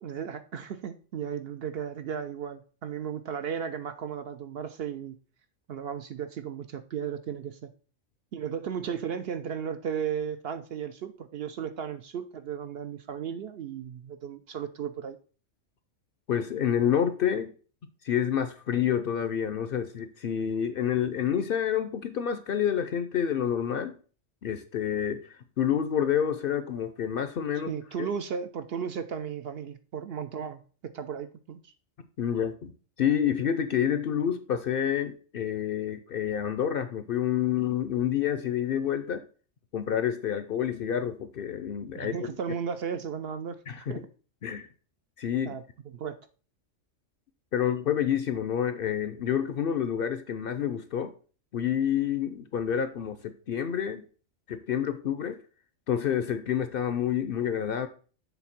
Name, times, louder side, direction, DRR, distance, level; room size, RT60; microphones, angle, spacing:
voice 1, 0.0-5.2 5.7-7.7 8.3-15.2 27.7-31.7 41.9-44.1 45.4-45.6 45.9-46.2, right 7 dB, 65° right, 0.7 m, -35 dB
voice 2, 16.3-17.5 18.0-23.9 24.4-27.7 32.2-32.7 33.0-39.2 39.7-42.2 43.7-44.0 44.4-44.7 45.2-45.6 47.5-51.1 51.5-54.0 54.5-55.4 55.9-57.9, left 9 dB, 60° left, 0.7 m, -28 dB
7.1 x 3.5 x 5.8 m
omnidirectional pair, 1.3 m